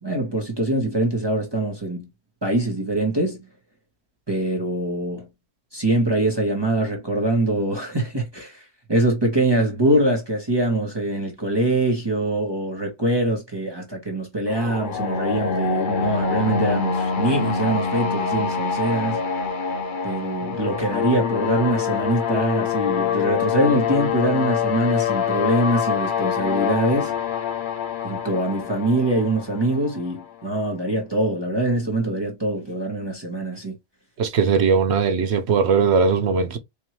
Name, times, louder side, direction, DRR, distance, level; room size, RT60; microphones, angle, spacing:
voice 1, 0.0-2.1 2.4-3.4 4.3-5.3 5.7-8.6 8.9-19.2 20.0-27.1 28.0-33.7, right 1 dB, 20° right, 1.2 m, -23 dB
sound 1, 14.5-30.3, left 7 dB, 50° left, 0.8 m, -25 dB
voice 2, 34.2-36.6, right 5 dB, 65° right, 1.0 m, -19 dB
4.5 x 2.7 x 3.0 m
omnidirectional pair, 1.2 m